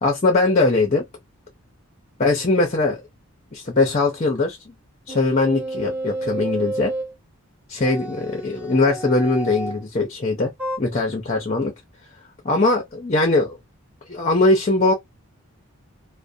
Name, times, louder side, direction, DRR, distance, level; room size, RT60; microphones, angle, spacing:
voice 1, 0.0-1.1 2.2-3.0 3.5-4.7 5.1-6.9 7.7-10.5 10.8-11.7 12.4-13.6 14.1-14.9, left 2 dB, 30° left, 0.5 m, -20 dB
sound 1, 5.1-7.1 7.8-9.8 10.6-10.8, right 1 dB, 5° right, 0.7 m, -30 dB
2.5 x 2.0 x 2.6 m
head